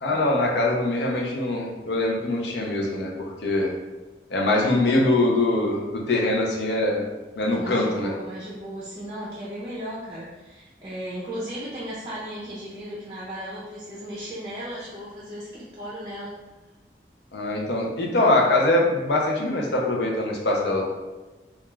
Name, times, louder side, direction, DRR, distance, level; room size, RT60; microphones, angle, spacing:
voice 1, 0.0-3.7 4.3-7.1 7.4-8.1 17.3-20.9, left 2 dB, 75° left, -1 dB, 0.5 m, -23 dB
voice 2, 7.5-16.4, equal, 25° right, -7 dB, 0.5 m, -36 dB
2.3 x 2.2 x 3.1 m, 1.2 s
head